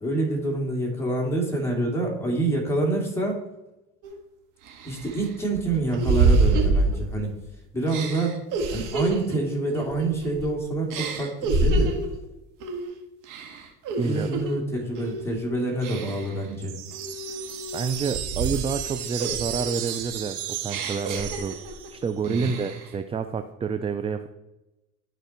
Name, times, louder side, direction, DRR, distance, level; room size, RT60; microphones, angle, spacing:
voice 1, 0.0-3.4 4.8-7.3 7.7-8.3 8.7-11.9 14.0-16.8 22.2-22.6, right 2 dB, 5° left, -1 dB, 2.7 m, -27 dB
sound 1, 4.0-4.1 4.7-7.4 7.9-10.5 10.9-12.1 12.6-12.9 13.2-14.5 14.9-15.3 15.8-16.4 16.9-18.8 19.2-21.9 22.2-22.9, right 3 dB, 65° right, 1.7 m, -27 dB
voice 2, 14.0-14.3 17.7-21.6 21.9-24.3, right 5 dB, 20° right, 9 dB, 0.4 m, -28 dB
sound 2, 16.6-22.1, right 11 dB, 85° right, 1.2 m, -34 dB
11.5 x 4.6 x 4.4 m, 0.98 s
supercardioid pair, 100°, 33 cm